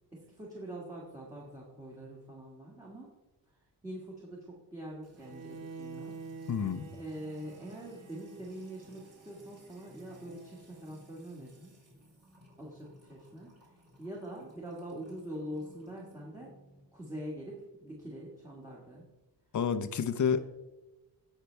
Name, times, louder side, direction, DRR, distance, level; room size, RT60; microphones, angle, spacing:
voice 1, 0.1-3.1 3.5-6.2 6.9-11.8 12.6-16.6 16.9-19.1 20.2-20.4, right 1 dB, 5° right, -5 dB, 1.8 m, -44 dB
Music / Water tap faucet / Trickle dribble, 5.0-16.8, equal, 35° right, 3.8 m, -59 dB
Bowed string instrument, 5.2-11.2, right 4 dB, 85° right, 1.7 m, -49 dB
voice 2, 6.5-6.9 19.5-20.4, left 7 dB, 45° left, 11 dB, 0.8 m, -29 dB
16.5 x 5.8 x 3.4 m, 1.1 s
wide cardioid pair, 155°, 43 cm